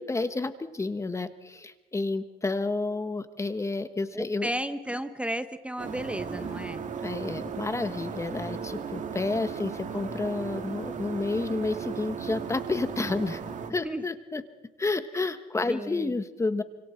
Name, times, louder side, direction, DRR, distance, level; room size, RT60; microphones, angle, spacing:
voice 1, 0.0-4.5 7.0-13.4 13.7-14.4 14.8-16.6, left 3 dB, 15° left, 11 dB, 1.1 m, -30 dB
voice 2, 4.1-6.8 13.8-14.0 15.7-16.2, right 1 dB, 5° right, 11 dB, 0.9 m, -33 dB
sound 1, 5.8-13.7, right 6 dB, 45° right, 2.1 m, -36 dB
27.5 x 26.0 x 4.4 m, 1.1 s
cardioid pair, 110°, 17 cm